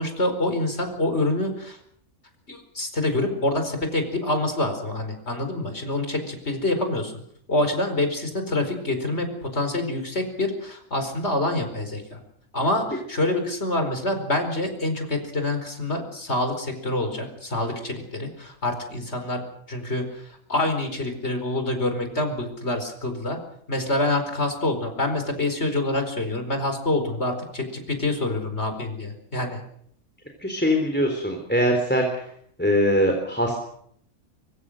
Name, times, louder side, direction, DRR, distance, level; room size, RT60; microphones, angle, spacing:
voice 1, 0.0-1.8 2.5-7.1 7.5-12.2 12.5-19.4 19.7-23.4 23.7-29.6, left 2 dB, 50° left, 6 dB, 4.9 m, -26 dB
voice 2, 30.4-32.3 32.6-33.6, equal, 5° left, 3 dB, 3.7 m, -22 dB
24.5 x 24.0 x 6.5 m, 0.68 s
omnidirectional pair, 1.5 m